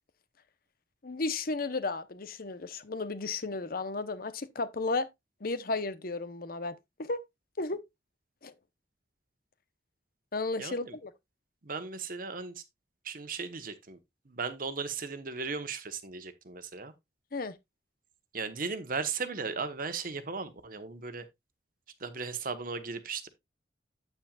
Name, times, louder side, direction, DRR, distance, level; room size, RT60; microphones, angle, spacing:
voice 1, 1.0-5.1 5.4-7.2 7.6-7.8 8.4-8.5 10.3-11.1 17.3-17.5, left 3 dB, 55° left, 0.9 m, -34 dB
voice 2, 10.6-10.9 11.6-12.6 13.0-14.0 14.2-16.9 18.3-21.3 22.0-23.3, right 4 dB, 50° right, 1.2 m, -36 dB
8.9 x 8.9 x 2.4 m
head